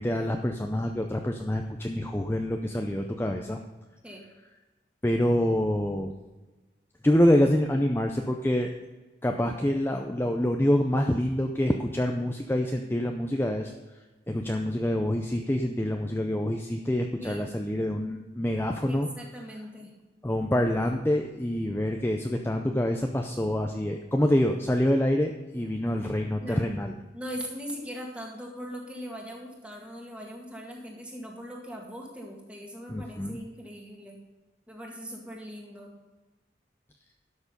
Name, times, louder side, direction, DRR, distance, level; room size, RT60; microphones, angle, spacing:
voice 1, 0.0-3.6 5.0-6.1 7.0-8.7 9.2-13.7 14.3-19.1 20.2-26.9 32.9-33.4, left 1 dB, 15° left, 3 dB, 0.5 m, -26 dB
voice 2, 17.2-17.5 18.9-19.9 26.4-26.6 27.1-34.2 34.7-35.9, equal, 5° right, -1 dB, 2.0 m, -40 dB
12.0 x 6.5 x 5.3 m, 1.2 s
head